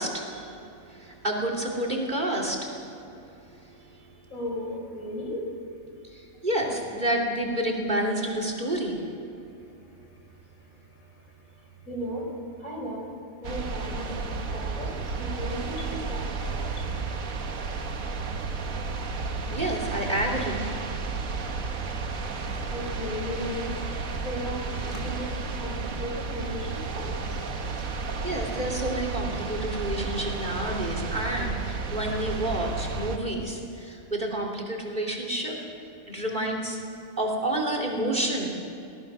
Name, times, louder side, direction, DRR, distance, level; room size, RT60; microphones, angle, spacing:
voice 1, 0.0-2.8 3.4-4.0 6.0-9.0 19.5-20.7 28.2-35.6 36.1-36.8 37.2-38.6, right 1 dB, 35° right, 0 dB, 3.1 m, -29 dB
voice 2, 4.3-5.4 11.9-12.2 12.6-13.1 13.4-14.9 15.2-16.6 22.7-23.7 24.2-24.6 24.8-25.3 25.6-27.0, equal, 75° left, -1 dB, 5.1 m, -35 dB
sound 1, 13.4-33.2, right 4 dB, 80° right, 1.8 m, -32 dB
23.0 x 18.5 x 6.2 m, 2.7 s
omnidirectional pair, 1.4 m